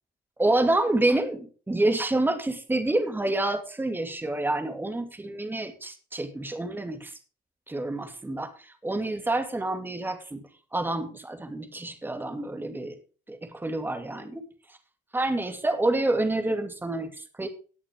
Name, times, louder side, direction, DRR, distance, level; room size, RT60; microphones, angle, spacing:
voice 1, 0.4-7.1 7.7-12.9 13.3-14.4 14.7-14.8 15.1-17.5, right 2 dB, 10° right, 6 dB, 2.3 m, -28 dB
18.5 x 6.5 x 3.6 m, 0.37 s
cardioid pair, 110°, 17 cm